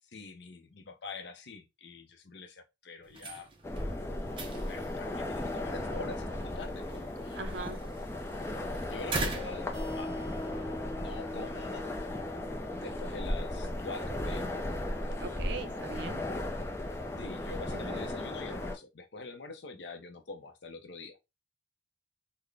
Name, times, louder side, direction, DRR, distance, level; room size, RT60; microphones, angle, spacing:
voice 1, 0.1-3.5 4.7-7.7 8.9-10.2 10.9-11.9 12.8-14.6 17.2-21.2, left 3 dB, 65° left, 0.6 m, -45 dB
sound 1, 3.0-10.5, right 3 dB, 25° right, 0.6 m, -42 dB
sound 2, 3.6-18.8, left 1 dB, 15° left, 0.4 m, -36 dB
voice 2, 7.3-7.8 15.2-16.2 17.7-18.1, right 3 dB, 65° right, 0.6 m, -40 dB
sound 3, 9.3-14.7, left 2 dB, 30° left, 1.0 m, -44 dB
3.8 x 2.1 x 3.3 m
head